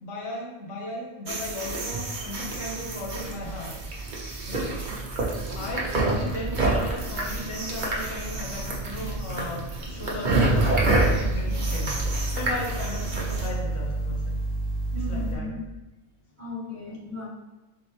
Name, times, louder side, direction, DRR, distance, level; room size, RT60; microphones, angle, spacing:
voice 1, 0.0-3.7 4.5-4.9 5.5-12.0 12.3-14.4 14.9-15.5, left 1 dB, 75° left, -3 dB, 1.3 m, -36 dB
sound 1, 1.3-13.5, right 2 dB, 45° right, 0.8 m, -28 dB
sound 2, 10.3-15.3, right 2 dB, 20° left, 1.1 m, -29 dB
voice 2, 14.9-15.6 16.4-17.3, left 2 dB, 10° right, -9 dB, 1.4 m, -36 dB
3.9 x 3.8 x 3.1 m, 1.1 s
omnidirectional pair, 1.3 m